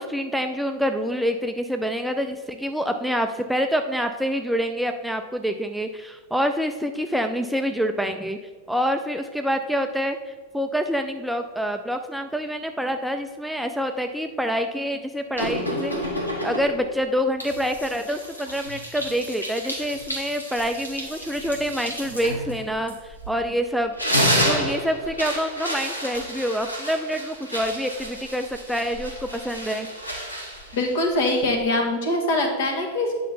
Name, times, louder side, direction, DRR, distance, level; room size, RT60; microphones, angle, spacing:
voice 1, 0.0-8.4 8.7-24.0 24.4-29.9, equal, ahead, 5 dB, 0.4 m, -26 dB
sound 1, 15.4-16.9 17.4-23.5 23.8-31.6, equal, 85° left, 1.6 m, -30 dB
voice 2, 30.7-33.1, left 2 dB, 55° left, 3 dB, 1.6 m, -23 dB
9.0 x 5.6 x 4.1 m, 1.5 s
figure-of-eight pair, 90°, 0 cm